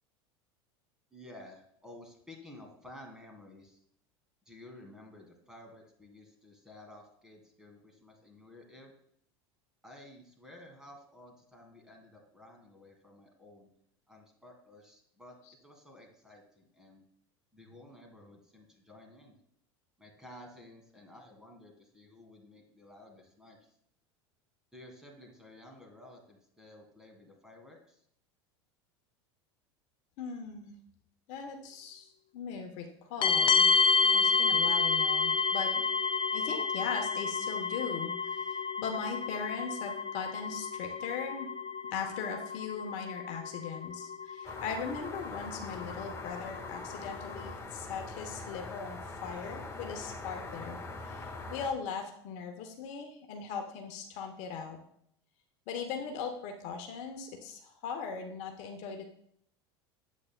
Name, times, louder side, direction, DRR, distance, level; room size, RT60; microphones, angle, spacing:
voice 1, 1.1-3.8 4.5-8.9 9.8-13.7 14.1-15.4 15.6-17.0 17.5-19.4 20.0-23.7 24.7-28.0, left 1 dB, 5° right, 1 dB, 2.3 m, -53 dB
voice 2, 30.2-30.7 31.3-33.7 34.0-35.7 36.3-41.5 41.9-54.8 55.7-59.0, left 6 dB, 55° left, 4 dB, 1.1 m, -39 dB
sound 1, 33.2-47.5, left 4 dB, 35° left, 0.5 m, -30 dB
sound 2, 44.4-51.7, left 2 dB, 20° left, 1.5 m, -43 dB
8.4 x 8.1 x 2.2 m, 0.68 s
hypercardioid pair, 85°, 15 cm